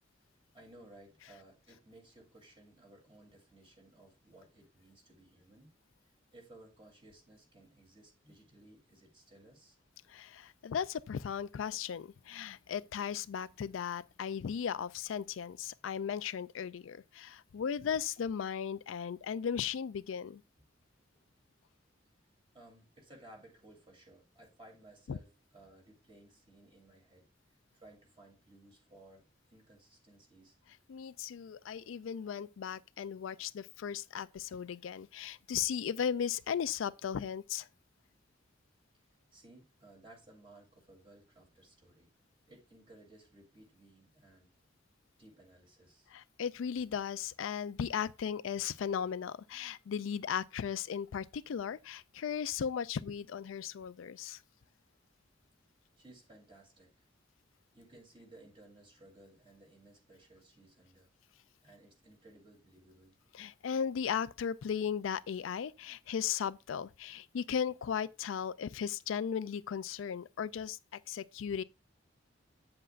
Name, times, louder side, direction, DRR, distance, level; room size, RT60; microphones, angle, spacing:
voice 1, 0.2-5.7 6.3-9.8 21.1-21.2 22.5-27.2 27.7-30.6 39.3-42.1 42.5-44.5 45.1-46.1 56.0-57.1 57.7-61.1 61.6-63.2, right 1 dB, 30° right, 3.1 m, -59 dB
voice 2, 10.1-20.4 25.1-25.2 30.9-37.7 46.1-54.4 63.4-71.6, left 7 dB, 90° left, 0.4 m, -36 dB
8.7 x 7.8 x 2.5 m
head